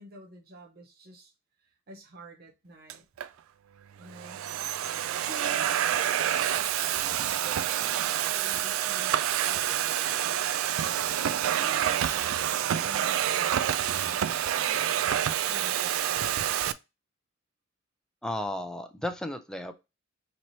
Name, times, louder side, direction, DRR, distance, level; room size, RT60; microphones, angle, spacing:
voice 1, 0.0-1.3 1.6-3.0 4.0-4.4 5.2-6.8 7.0-9.1 9.4-10.7 11.2-16.2, right 2 dB, 50° right, 0.8 m, -49 dB
Domestic sounds home sounds, 2.9-3.3 4.0-16.7, right 10 dB, 80° right, 0.3 m, -28 dB
voice 2, 18.2-19.7, left 1 dB, 5° left, 0.4 m, -34 dB
4.5 x 3.0 x 2.6 m
head